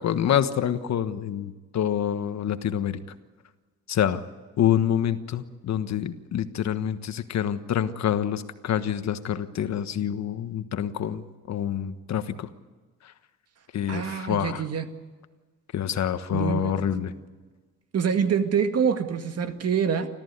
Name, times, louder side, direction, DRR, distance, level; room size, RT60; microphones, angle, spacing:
voice 1, 0.0-3.0 3.9-4.2 4.6-12.5 13.0-13.1 13.7-14.6 15.7-17.1, left 9 dB, 60° left, 10 dB, 1.4 m, -27 dB
voice 2, 13.9-14.9 16.3-16.8 17.9-20.1, right 7 dB, 55° right, 8 dB, 2.0 m, -25 dB
29.0 x 14.0 x 9.6 m, 1.4 s
cardioid pair, 90°, 30 cm